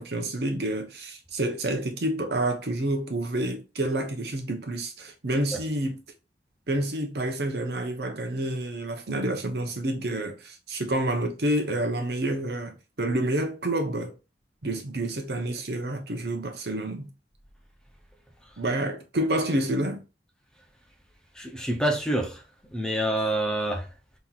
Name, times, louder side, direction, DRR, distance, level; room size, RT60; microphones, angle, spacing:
voice 1, 0.0-6.0 6.7-14.1 14.6-17.1 18.6-20.0, right 1 dB, 65° right, 0.8 m, -28 dB
voice 2, 21.3-22.4 22.7-23.9, right 1 dB, 5° left, 0.6 m, -27 dB
5.5 x 3.0 x 2.4 m
head